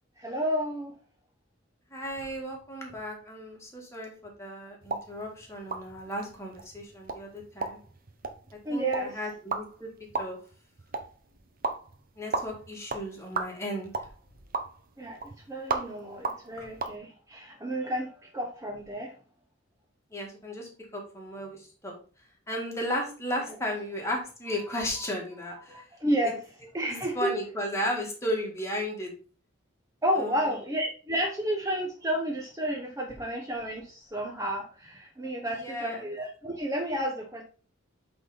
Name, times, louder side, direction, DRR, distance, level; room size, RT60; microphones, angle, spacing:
voice 1, 0.2-0.9 8.6-9.2 15.0-19.1 25.7-26.4 26.7-27.3 30.0-37.4, equal, 15° right, 1 dB, 0.9 m, -31 dB
voice 2, 1.9-7.8 8.7-9.9 10.2-10.4 12.2-13.9 16.6-16.7 20.1-21.9 22.5-25.8 26.2-26.3 26.9-29.1 30.2-30.4 35.5-36.1, equal, 15° left, -1 dB, 2.0 m, -35 dB
sound 1, 4.8-17.0, right 4 dB, 45° right, 0.9 m, -37 dB
8.1 x 4.1 x 4.0 m, 0.38 s
head